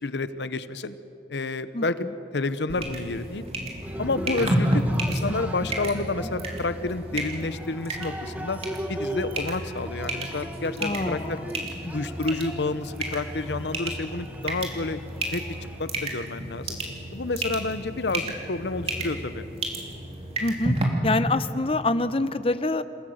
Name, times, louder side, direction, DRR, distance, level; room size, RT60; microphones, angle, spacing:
voice 1, 0.0-0.9 1.3-2.0 2.3-3.5 4.0-8.6 8.9-11.4 11.9-15.0 15.3-15.4 15.8-16.8 17.1-19.5, left 3 dB, 80° left, 13 dB, 0.9 m, -29 dB
voice 2, 1.7-2.1 10.8-11.5 11.8-12.0 18.1-18.2 20.4-20.7 21.0-22.8, left 2 dB, 30° left, 12 dB, 0.7 m, -26 dB
sound 1, 2.7-20.8, right 1 dB, 35° right, 2.8 m, -32 dB
Cheering, 3.8-15.8, equal, 10° right, 1.3 m, -38 dB
27.5 x 16.5 x 7.9 m, 2.8 s
head